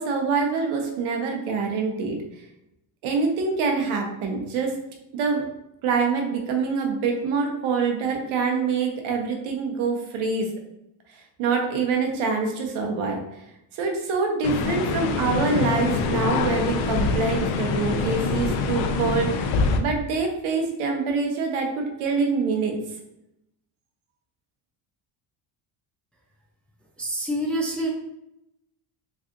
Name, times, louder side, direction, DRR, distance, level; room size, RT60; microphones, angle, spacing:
voice 1, 0.0-2.2 3.0-4.7 5.1-5.4 5.8-10.5 11.4-13.2 13.7-19.5 19.8-22.8, right 4 dB, 75° right, 2 dB, 1.0 m, -25 dB
sound 1, 14.4-19.8, left 4 dB, 80° left, 0.6 m, -25 dB
voice 2, 27.0-27.9, right 1 dB, 5° left, -2 dB, 0.4 m, -26 dB
3.7 x 3.3 x 2.5 m, 0.84 s
cardioid pair, 125°, 48 cm